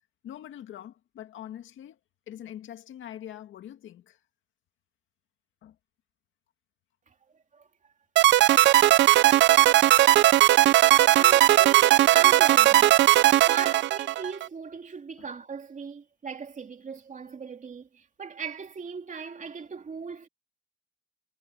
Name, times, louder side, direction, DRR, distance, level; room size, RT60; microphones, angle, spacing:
voice 1, 0.2-2.0 2.3-4.2 5.6-5.8 15.2-15.3, left 11 dB, 75° left, 2.2 m, -43 dB
sound 1, 8.2-14.5, right 15 dB, 65° right, 0.4 m, -18 dB
voice 2, 11.1-12.9 13.4-20.3, right 6 dB, 40° right, 2.9 m, -38 dB
cardioid pair, 90°, 20 cm